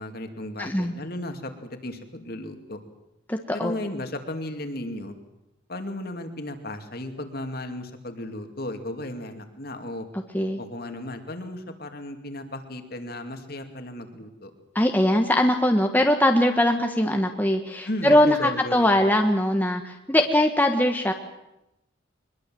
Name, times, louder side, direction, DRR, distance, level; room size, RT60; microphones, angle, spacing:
voice 1, 0.0-2.8 3.5-5.1 5.7-10.1 10.6-14.5 17.8-18.9, left 1 dB, 50° left, 6 dB, 2.6 m, -35 dB
voice 2, 0.6-0.9 3.3-3.7 10.3-10.6 14.7-21.1, left 1 dB, 10° left, 4 dB, 1.3 m, -21 dB
23.0 x 21.5 x 7.8 m, 0.90 s
head